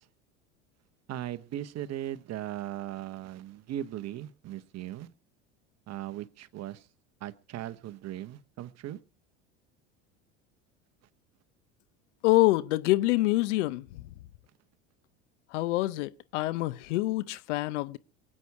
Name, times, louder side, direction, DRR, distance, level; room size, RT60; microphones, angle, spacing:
voice 1, 1.1-5.1 5.9-6.9 7.2-9.0, right 12 dB, 45° right, 1.1 m, -38 dB
voice 2, 12.2-13.9 15.5-18.0, left 19 dB, 70° left, 0.8 m, -26 dB
23.5 x 8.7 x 4.7 m
hypercardioid pair, 75°, 37 cm